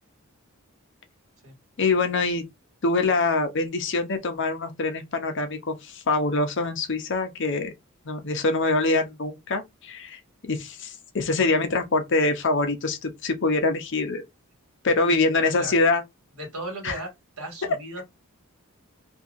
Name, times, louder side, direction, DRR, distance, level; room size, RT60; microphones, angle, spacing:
voice 1, 1.8-2.4 2.8-7.7 8.1-14.2 14.8-16.0 16.8-17.0, left 3 dB, 55° left, 0.7 m, -24 dB
voice 2, 14.8-15.2 15.6-15.8 16.4-18.0, right 1 dB, 75° right, 1.7 m, -37 dB
2.7 x 2.7 x 2.5 m
head